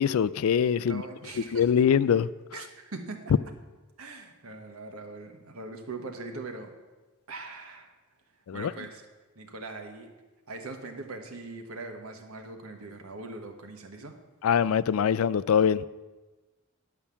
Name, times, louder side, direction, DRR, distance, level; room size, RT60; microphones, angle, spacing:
voice 1, 0.0-1.0 1.5-2.3 8.5-8.7 14.4-15.9, left 7 dB, 75° left, 0.3 m, -23 dB
voice 2, 0.8-1.8 2.5-3.3 4.0-6.7 7.3-7.9 8.5-9.1 9.3-10.1 10.5-14.2, right 3 dB, 80° right, 1.3 m, -41 dB
10.5 x 5.7 x 7.0 m
head